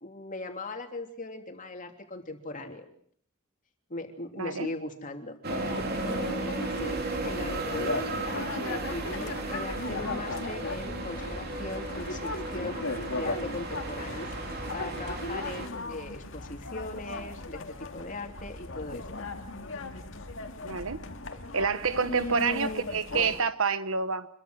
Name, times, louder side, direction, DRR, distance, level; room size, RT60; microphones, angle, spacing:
voice 1, 0.0-2.8 3.9-5.4 6.1-12.8 13.1-14.3 14.7-19.2 22.0-22.9, left 2 dB, 40° left, 3.1 m, -39 dB
voice 2, 4.3-4.7 20.6-21.0 21.5-24.3, right 5 dB, 75° right, 1.2 m, -28 dB
sound 1, 5.4-15.7, right 2 dB, 50° right, 3.4 m, -35 dB
sound 2, 5.5-23.4, left 2 dB, 65° left, 2.2 m, -37 dB
25.5 x 22.5 x 6.4 m
head